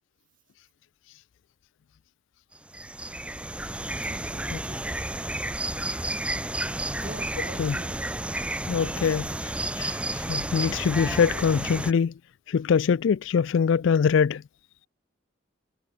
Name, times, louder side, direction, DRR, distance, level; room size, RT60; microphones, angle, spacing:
sound 1, 2.6-11.9, right 1 dB, 5° right, 1.1 m, -31 dB
voice 1, 4.0-5.3 6.2-6.3 6.9-8.1, right 1 dB, 40° right, 7.5 m, -44 dB
voice 2, 8.7-9.3 9.8-9.9 10.3-12.1 12.5-14.4, left 6 dB, 65° left, 0.4 m, -23 dB
head